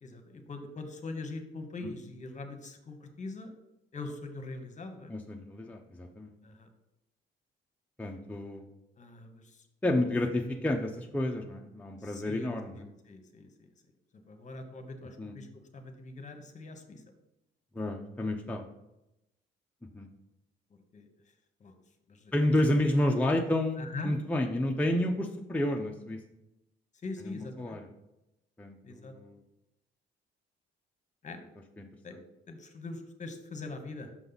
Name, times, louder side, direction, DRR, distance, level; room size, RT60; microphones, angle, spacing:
voice 1, 0.0-3.5 3.9-5.1 6.4-6.7 9.0-9.7 12.0-13.7 14.3-17.0 20.9-21.1 21.6-21.8 22.1-22.5 23.8-24.1 27.0-27.8 28.8-29.1 31.2-31.4 32.0-32.2 32.5-34.1, left 3 dB, 35° left, 6 dB, 1.0 m, -42 dB
voice 2, 5.1-6.3 8.0-8.6 9.8-12.8 15.2-15.3 17.7-18.6 19.9-20.1 22.3-26.2 27.3-27.9 28.6-29.4 31.8-31.9, left 1 dB, 5° left, 1 dB, 0.6 m, -30 dB
6.0 x 5.4 x 4.0 m, 0.91 s
cardioid pair, 90°, 20 cm